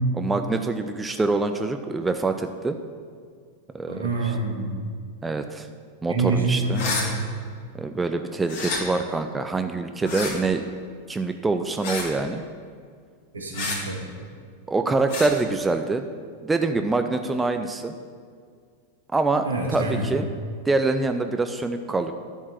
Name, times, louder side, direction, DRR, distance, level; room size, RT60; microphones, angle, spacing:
voice 1, 0.1-2.8 3.7-4.3 5.2-5.7 6.0-6.8 7.7-10.7 11.1-12.4 14.7-16.0 16.4-17.9 19.1-20.3 20.6-22.1, right 3 dB, 10° right, 7 dB, 0.4 m, -25 dB
voice 2, 3.9-4.7 6.1-7.1 13.3-14.0 19.4-20.1, right 3 dB, 75° right, -1 dB, 1.7 m, -26 dB
sound 1, 6.7-7.1 8.5-8.8 10.0-10.3 11.8-12.1 13.5-13.8 15.1-15.3, left 3 dB, 50° left, 1.6 m, -29 dB
12.0 x 4.6 x 5.9 m, 2.1 s
figure-of-eight pair, 90°, 0 cm